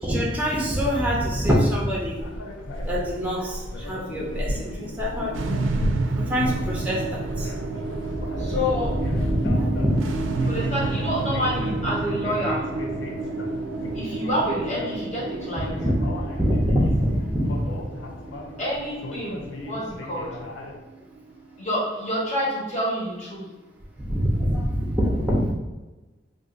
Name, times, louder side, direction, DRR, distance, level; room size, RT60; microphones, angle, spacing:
voice 1, 0.0-2.2 2.9-5.4 6.2-7.5 8.3-10.1 15.7-16.1 16.3-17.7 24.0-25.5, equal, 10° right, -4 dB, 0.5 m, -24 dB
sound 1, 2.2-20.8, left 1 dB, 80° left, 0.4 m, -35 dB
sound 2, 5.3-21.7, right 3 dB, 85° right, 0.3 m, -30 dB
voice 2, 8.4-8.9 10.5-12.7 13.9-15.8 18.6-20.3 21.6-23.4, equal, 40° left, -6 dB, 1.1 m, -28 dB
2.5 x 2.5 x 3.7 m, 1.2 s
head